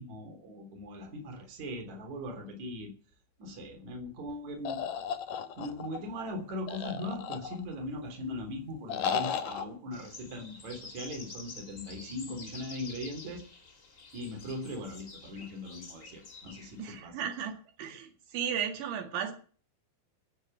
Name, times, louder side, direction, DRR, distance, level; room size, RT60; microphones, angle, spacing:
voice 1, 0.0-2.9 3.4-4.8 5.6-13.4 14.1-17.2, left 1 dB, 40° right, 4 dB, 4.3 m, -40 dB
sound 1, 4.7-6.0 6.7-7.8 8.9-9.7, left 7 dB, 70° left, 2.0 m, -34 dB
sound 2, 9.9-17.0, left 4 dB, 40° left, 1.0 m, -49 dB
voice 2, 16.8-19.3, right 8 dB, 75° right, 5 dB, 4.4 m, -35 dB
16.0 x 8.2 x 9.4 m, 0.43 s
omnidirectional pair, 5.4 m